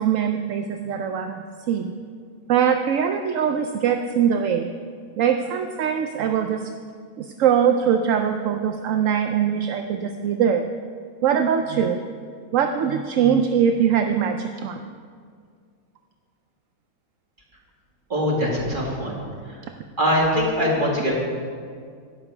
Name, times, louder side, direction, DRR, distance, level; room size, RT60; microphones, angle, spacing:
voice 1, 0.0-1.9 2.5-4.7 5.2-6.7 7.2-10.7 11.2-12.0 12.5-14.9, right 8 dB, 65° right, 6 dB, 0.9 m, -22 dB
voice 2, 18.1-19.2 19.5-19.6 20.0-21.1, equal, 30° right, -3 dB, 2.4 m, -22 dB
12.0 x 9.6 x 4.9 m, 2.1 s
omnidirectional pair, 1.7 m